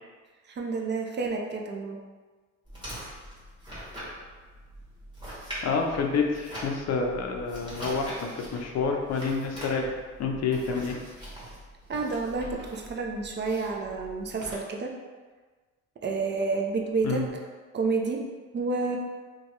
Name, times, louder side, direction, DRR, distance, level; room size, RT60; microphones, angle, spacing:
voice 1, 0.5-2.0 11.9-15.0 16.0-17.3 17.7-18.3 18.5-19.0, right 4 dB, 35° right, 1 dB, 0.4 m, -29 dB
sound 1, 2.7-14.5, equal, 15° right, 1.4 m, -42 dB
voice 2, 5.6-9.9 10.2-11.0 17.0-17.2, left 5 dB, 60° left, 2 dB, 0.5 m, -28 dB
2.8 x 2.2 x 3.0 m, 1.4 s
cardioid pair, 90°, 30 cm